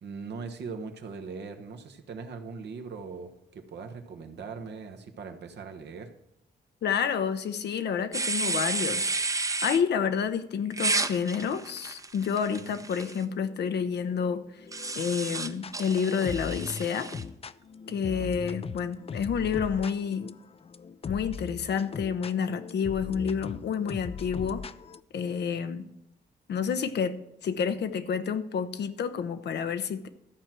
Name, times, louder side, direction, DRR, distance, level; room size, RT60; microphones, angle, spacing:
voice 1, 0.0-6.1 12.5-12.9 17.9-18.3, right 5 dB, 75° right, 1.2 m, -41 dB
voice 2, 6.8-9.1 9.6-14.4 14.9-17.1 17.9-20.3 21.1-24.6 25.1-25.9 26.5-27.2 27.4-30.1, left 7 dB, 75° left, 0.7 m, -29 dB
sound 1, 8.1-9.8 10.7-13.2 14.7-17.2, right 3 dB, 20° right, 0.6 m, -31 dB
sound 2, 13.0-15.7 16.2-25.0, left 6 dB, 35° left, 0.4 m, -40 dB
13.0 x 4.5 x 7.5 m
cardioid pair, 75°, 18 cm